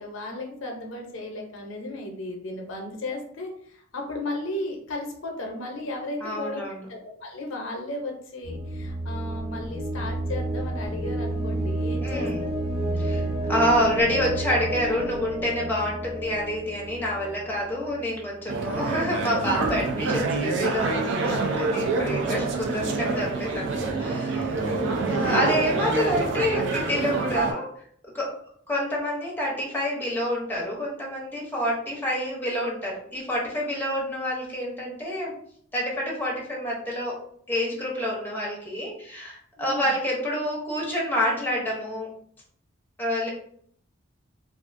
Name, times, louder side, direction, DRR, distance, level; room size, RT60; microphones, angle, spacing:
voice 1, 0.0-6.6 6.9-12.5 13.0-13.2 24.9-25.4 39.6-39.9, left 2 dB, 85° left, 1 dB, 0.6 m, -35 dB
voice 2, 6.2-6.8 12.0-12.5 13.0-24.7 25.0-27.7 28.1-28.3 28.7-35.3 35.7-37.1 37.5-42.1 43.0-43.3, equal, 10° left, -3 dB, 0.6 m, -28 dB
sound 1, 8.4-18.3, right 1 dB, 30° right, 1.2 m, -30 dB
sound 2, 18.5-27.5, right 3 dB, 65° right, 0.4 m, -26 dB
2.4 x 2.4 x 2.4 m, 0.64 s
head